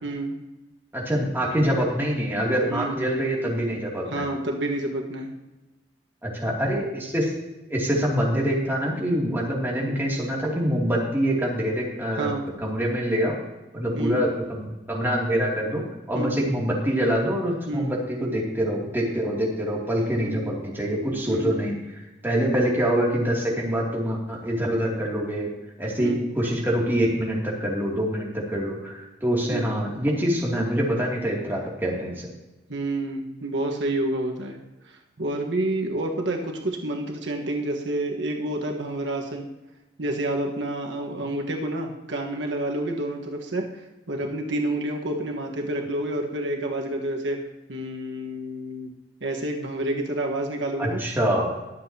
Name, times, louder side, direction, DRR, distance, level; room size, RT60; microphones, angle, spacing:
voice 1, 0.0-0.4 2.7-3.0 4.1-5.3 12.2-12.5 13.9-14.2 16.1-16.4 17.7-18.0 20.2-20.5 21.3-21.6 26.0-26.3 29.4-29.7 32.7-34.6 34.9-39.5 40.0-43.7 44.1-47.4 47.7-48.9 49.2-51.0, right 1 dB, 85° right, 1 dB, 1.4 m, -29 dB
voice 2, 0.9-4.3 6.2-7.3 7.7-12.3 12.6-13.4 13.7-15.8 16.1-21.7 22.2-25.5 25.8-32.3 50.8-51.5, equal, 10° right, -3 dB, 2.6 m, -25 dB
22.0 x 7.8 x 2.9 m, 1.1 s
head